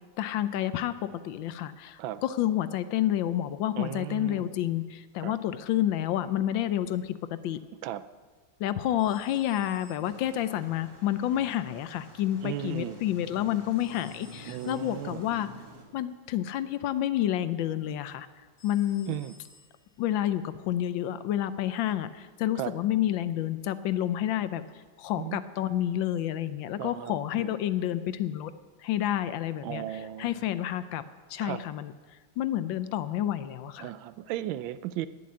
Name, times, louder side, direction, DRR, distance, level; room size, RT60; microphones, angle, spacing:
voice 1, 0.2-7.6 8.6-15.5 15.9-18.3 18.6-19.1 20.0-24.6 25.0-28.5 28.8-29.8 30.2-31.0 31.3-31.9 32.4-33.9, left 12 dB, 75° left, 13 dB, 1.3 m, -29 dB
voice 2, 3.8-4.5 5.2-5.4 7.8-8.1 12.4-13.0 14.5-15.2 19.1-19.4 22.5-22.7 25.2-25.4 26.8-27.5 29.6-30.4 31.4-31.6 33.8-35.1, right 13 dB, 80° right, 15 dB, 1.3 m, -36 dB
sound 1, 9.0-10.6 13.8-15.0 18.6-19.9, left 1 dB, 40° left, 3.2 m, -57 dB
sound 2, 10.0-15.8, right 1 dB, 10° right, 1.8 m, -49 dB
11.0 x 10.5 x 8.5 m, 1.4 s
omnidirectional pair, 2.2 m